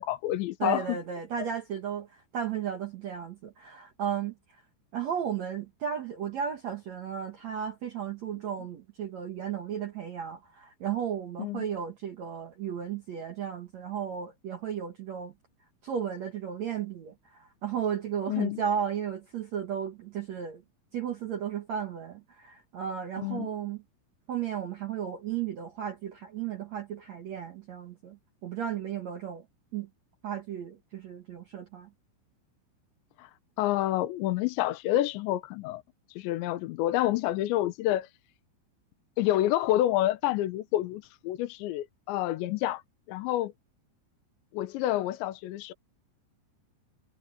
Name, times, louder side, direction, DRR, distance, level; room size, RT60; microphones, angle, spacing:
voice 1, 0.0-1.0 11.4-11.6 18.3-18.6 23.2-23.5 33.2-33.3 33.6-35.8 36.2-38.1 39.2-42.8 43.1-43.5 44.5-45.7, left 14 dB, 80° left, 3.2 m, -28 dB
voice 2, 0.6-4.6 4.9-15.3 15.8-20.6 20.9-23.8 24.3-29.4 29.7-29.9 30.2-31.9, right 8 dB, 75° right, 1.6 m, -34 dB
omnidirectional pair, 5.4 m